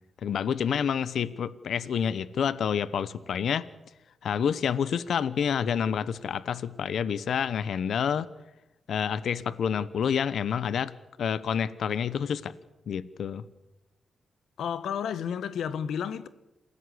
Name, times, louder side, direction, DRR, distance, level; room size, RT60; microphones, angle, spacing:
voice 1, 0.2-3.6 4.2-8.3 8.9-10.9 11.2-12.5 12.9-13.4, left 7 dB, 70° left, 1.0 m, -28 dB
voice 2, 14.6-16.3, left 8 dB, 85° left, 1.5 m, -31 dB
28.0 x 17.0 x 7.9 m
cardioid pair, 120°, 0 cm